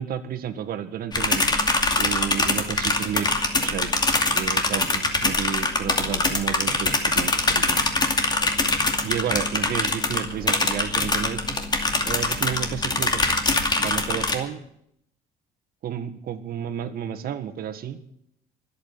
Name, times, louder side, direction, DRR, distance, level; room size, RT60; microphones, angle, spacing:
voice 1, 0.0-1.7 2.0-3.3 3.6-3.9 4.3-7.8 9.0-11.6 12.1-13.2 13.8-14.6 15.8-18.0, right 9 dB, 60° right, 10 dB, 1.8 m, -31 dB
sound 1, 1.1-14.4, left 3 dB, 25° left, 2.5 m, -23 dB
24.5 x 8.8 x 5.8 m, 0.72 s
cardioid pair, 110°, 17 cm